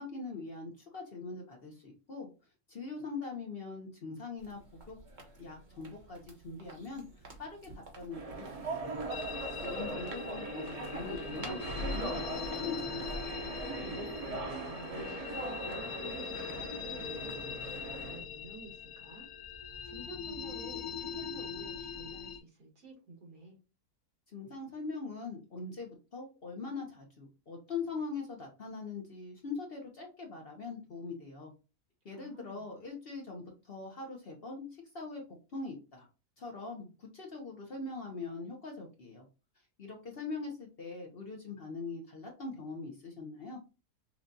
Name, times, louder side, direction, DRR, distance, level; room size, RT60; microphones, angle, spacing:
voice 1, 0.0-2.3 2.7-5.0 5.4-9.0 9.4-13.1 24.3-31.5 32.0-35.2 35.5-36.1 36.4-39.2 39.8-43.6, left 4 dB, 45° left, 0 dB, 0.9 m, -42 dB
sound 1, 4.4-13.6, right 1 dB, 35° right, 0.9 m, -51 dB
sound 2, 8.1-18.2, right 2 dB, 50° right, 0.4 m, -39 dB
sound 3, 9.1-22.4, left 6 dB, 85° left, 1.2 m, -42 dB
voice 2, 13.8-19.3 19.8-23.6 32.1-32.6, right 2 dB, 75° right, -1 dB, 2.2 m, -50 dB
6.0 x 2.3 x 2.6 m, 0.31 s
omnidirectional pair, 1.6 m